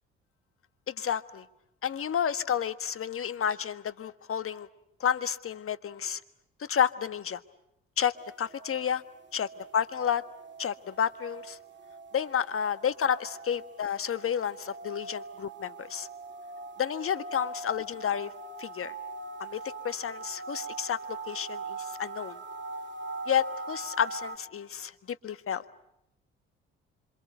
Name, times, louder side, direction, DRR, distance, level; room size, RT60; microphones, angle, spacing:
voice 1, 0.9-1.4 1.8-4.7 5.0-6.2 6.6-7.4 8.0-9.0 9.3-10.2 10.6-11.6 12.1-16.1 16.8-18.3 18.6-18.9 19.4-22.4 23.3-25.6, left 8 dB, 50° left, 14 dB, 1.5 m, -31 dB
sound 1, 8.2-24.4, right 3 dB, 40° right, 3.0 m, -42 dB
26.5 x 26.5 x 8.1 m, 0.82 s
supercardioid pair, 60°, 29 cm